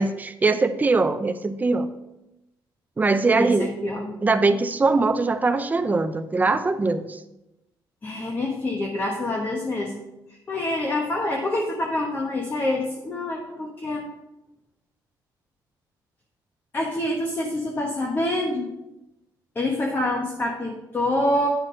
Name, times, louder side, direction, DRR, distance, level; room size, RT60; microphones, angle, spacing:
voice 1, 0.0-1.9 3.0-3.7 4.2-7.2, right 3 dB, 20° right, 10 dB, 0.6 m, -22 dB
voice 2, 3.3-4.2 8.0-10.0 10.5-14.1 16.7-18.7 19.5-21.5, left 1 dB, 25° left, 0 dB, 1.2 m, -26 dB
9.4 x 6.2 x 3.8 m, 0.92 s
cardioid pair, 110°, 8 cm